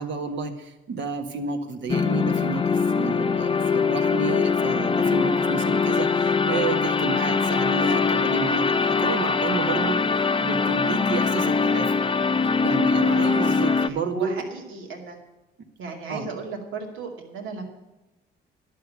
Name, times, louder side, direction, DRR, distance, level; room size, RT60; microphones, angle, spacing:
voice 1, 0.0-12.1 12.6-14.5 16.1-16.3, right 4 dB, 65° right, 5 dB, 1.8 m, -31 dB
sound 1, 1.9-13.9, left 5 dB, 25° left, 0.7 m, -22 dB
voice 2, 13.2-15.2 15.8-17.7, right 4 dB, 85° right, 1 dB, 2.4 m, -36 dB
11.5 x 6.6 x 8.4 m, 1.1 s
cardioid pair, 90°, 20 cm